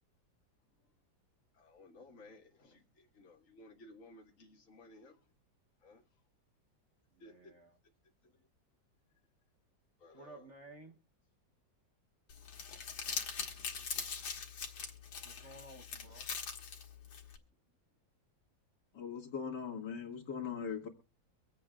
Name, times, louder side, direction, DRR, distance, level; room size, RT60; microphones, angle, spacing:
voice 1, 1.5-5.4 5.8-6.2 7.2-7.5 8.2-8.5 10.0-10.5 15.4-15.6, left 2 dB, 45° left, -1 dB, 2.1 m, -58 dB
voice 2, 7.1-7.7 10.1-11.0 15.2-16.3, right 2 dB, 45° right, 3 dB, 1.1 m, -54 dB
Crumpling crinkling, 12.3-17.4, left 6 dB, 85° left, 2.3 m, -42 dB
voice 3, 18.9-20.9, left 6 dB, 65° left, 1 dB, 2.5 m, -40 dB
24.5 x 8.4 x 2.4 m, 0.32 s
omnidirectional pair, 2.1 m